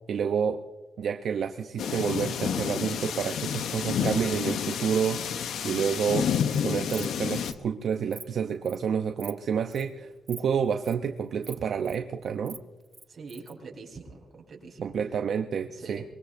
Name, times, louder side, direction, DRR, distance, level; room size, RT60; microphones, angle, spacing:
voice 1, 0.1-0.6 1.0-6.3 6.6-12.6 14.8-16.0, right 7 dB, 65° right, 6 dB, 0.6 m, -29 dB
sound 1, 1.8-7.5, left 8 dB, 90° left, 0.8 m, -30 dB
Insect, 6.3-6.6 6.9-7.1 7.4-7.6 7.9-8.2 8.6-8.8 9.2-9.4 9.7-9.9 10.3-10.4 10.7-10.9 11.4-12.0 12.3-13.5, right 2 dB, 15° right, 0.6 m, -45 dB
voice 2, 13.1-14.9 15.7-16.0, right 4 dB, 40° right, -1 dB, 4.3 m, -44 dB
23.5 x 22.5 x 2.6 m, 1.2 s
cardioid pair, 130°, 0 cm